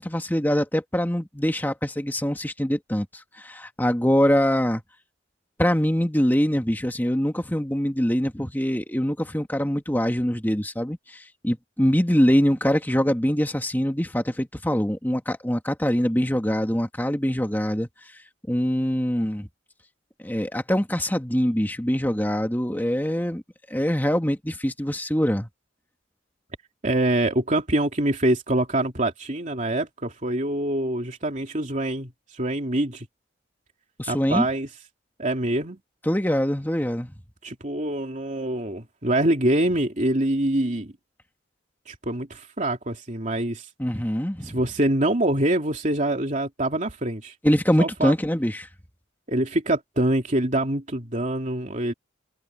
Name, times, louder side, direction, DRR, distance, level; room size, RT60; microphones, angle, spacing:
voice 1, 0.0-3.1 3.4-4.8 5.6-17.9 18.5-19.5 20.2-23.4 23.7-25.5 34.0-34.5 36.1-37.2 43.8-44.6 47.4-48.7, equal, 10° left, 2.0 m, -23 dB
voice 2, 26.8-33.1 34.1-34.7 35.2-35.8 37.4-40.9 41.9-43.7 44.4-47.3 47.8-48.1 49.3-51.9, right 1 dB, 40° right, 3.0 m, -25 dB
head